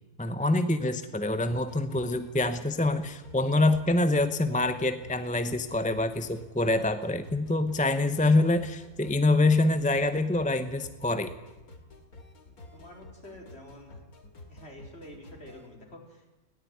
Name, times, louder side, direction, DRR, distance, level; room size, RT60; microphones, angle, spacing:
voice 1, 0.2-11.3, left 2 dB, 5° left, 10 dB, 0.6 m, -25 dB
sound 1, 1.5-15.7, left 2 dB, 70° left, 3.1 m, -50 dB
voice 2, 12.7-14.0 14.5-16.3, left 1 dB, 40° left, 1 dB, 4.7 m, -48 dB
20.5 x 16.5 x 9.5 m, 1.0 s
omnidirectional pair, 1.6 m